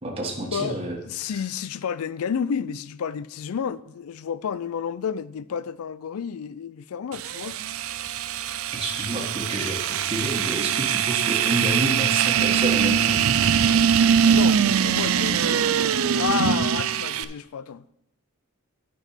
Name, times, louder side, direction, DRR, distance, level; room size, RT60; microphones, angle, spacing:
voice 1, 0.0-1.0 1.2-1.3 8.7-13.2, right 1 dB, 25° right, 1.3 m, -29 dB
voice 2, 1.0-7.6 14.3-15.8 16.2-17.8, left 7 dB, 85° left, 0.4 m, -30 dB
sound 1, 7.1-17.2, right 8 dB, 75° right, 0.4 m, -22 dB
10.0 x 5.3 x 5.7 m
head